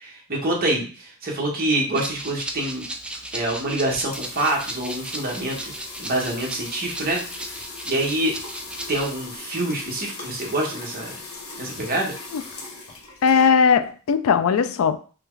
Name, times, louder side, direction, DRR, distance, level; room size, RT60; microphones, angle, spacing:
voice 1, 0.0-2.8 3.3-5.7 6.0-7.5 7.8-8.3 8.9-11.2 11.6-12.1, right 1 dB, 45° right, 1.4 m, -26 dB
Rattle (instrument), 1.9-9.1, right 1 dB, 5° right, 0.4 m, -36 dB
sound 1, 3.9-13.9, left 3 dB, 90° left, 1.2 m, -39 dB
voice 2, 13.2-15.0, left 6 dB, 70° left, 0.4 m, -18 dB
5.6 x 2.3 x 3.9 m
head